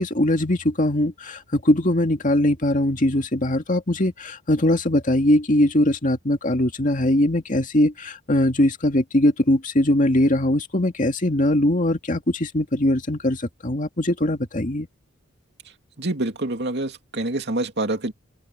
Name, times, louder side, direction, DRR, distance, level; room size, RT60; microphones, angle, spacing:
voice 1, 0.0-14.9, left 1 dB, 40° left, 2.2 m, -21 dB
voice 2, 16.0-18.1, right 2 dB, 55° right, 2.8 m, -26 dB
head